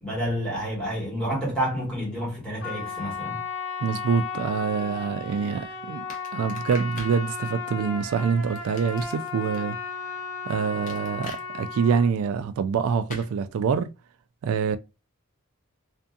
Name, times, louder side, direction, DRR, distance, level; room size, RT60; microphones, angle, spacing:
voice 1, 0.0-3.4, equal, 5° left, 1.5 m, -29 dB
Trumpet, 2.6-12.1, left 5 dB, 55° left, 1.0 m, -35 dB
voice 2, 3.8-6.0 6.3-9.8 10.5-13.9 14.4-14.8, right 6 dB, 75° right, 0.3 m, -25 dB
sound 1, 6.1-7.2 8.6-9.6 10.9-11.4 13.1-13.3, left 2 dB, 35° left, 0.7 m, -41 dB
2.6 x 2.6 x 2.3 m
head